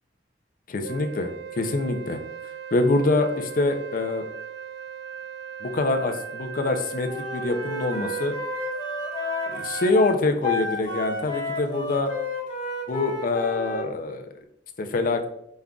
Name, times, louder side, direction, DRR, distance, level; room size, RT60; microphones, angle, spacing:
voice 1, 0.7-2.2 2.7-4.2 5.6-8.4 9.5-12.1 12.9-14.3 14.8-15.3, left 2 dB, 50° left, 7 dB, 0.5 m, -25 dB
Wind instrument woodwind instrument, 0.8-10.0, right 7 dB, 75° right, 0.3 m, -38 dB
Wind instrument woodwind instrument 2, 7.1-13.9, left 2 dB, 25° left, 1.3 m, -32 dB
5.2 x 3.6 x 2.3 m, 0.77 s
head